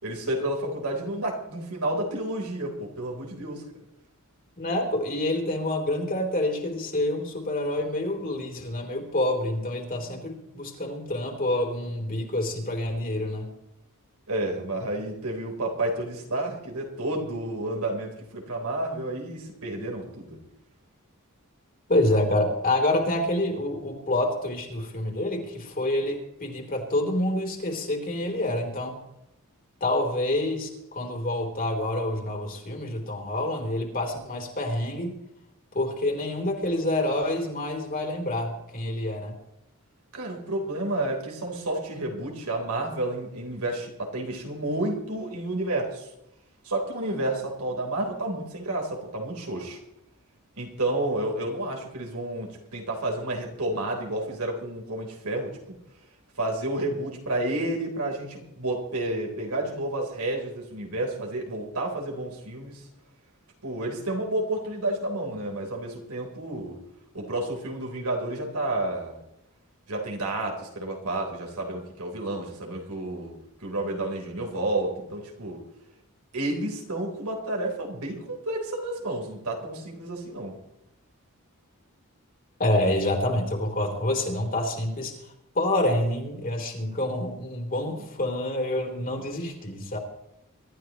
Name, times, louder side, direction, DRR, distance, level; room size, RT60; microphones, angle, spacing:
voice 1, 0.0-3.6 14.3-20.4 40.1-46.1 46.6-49.8 50.6-55.6 56.4-62.8 63.6-66.8 67.1-69.2 69.9-73.3 73.6-75.6 76.3-80.6, right 1 dB, 80° right, 1 dB, 3.8 m, -30 dB
voice 2, 4.6-13.5 21.9-29.0 29.8-35.2 35.7-39.4 82.6-85.2 85.5-90.0, left 1 dB, 40° left, 2 dB, 3.2 m, -27 dB
24.0 x 13.0 x 3.1 m, 0.84 s
head